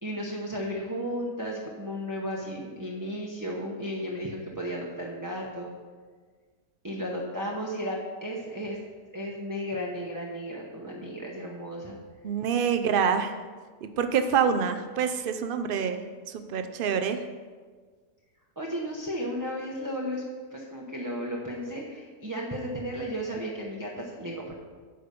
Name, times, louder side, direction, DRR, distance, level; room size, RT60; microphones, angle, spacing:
voice 1, 0.0-5.7 6.8-8.8 9.1-12.0 18.6-20.2 20.5-24.5, equal, 15° right, -3 dB, 0.8 m, -34 dB
voice 2, 12.2-13.3 13.8-16.0 16.3-17.2, right 7 dB, 65° right, 8 dB, 0.5 m, -26 dB
9.7 x 5.2 x 6.8 m, 1.5 s
omnidirectional pair, 1.6 m